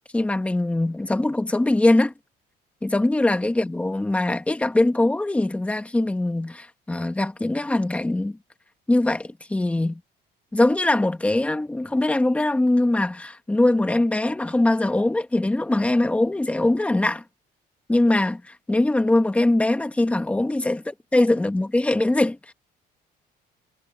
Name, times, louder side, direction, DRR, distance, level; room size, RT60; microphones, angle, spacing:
voice 1, 0.1-2.1 2.8-8.4 8.9-10.0 10.5-17.2 17.9-20.8 21.1-22.5, left 2 dB, 10° left, 1.7 m, -22 dB
cardioid pair, 155°, 17 cm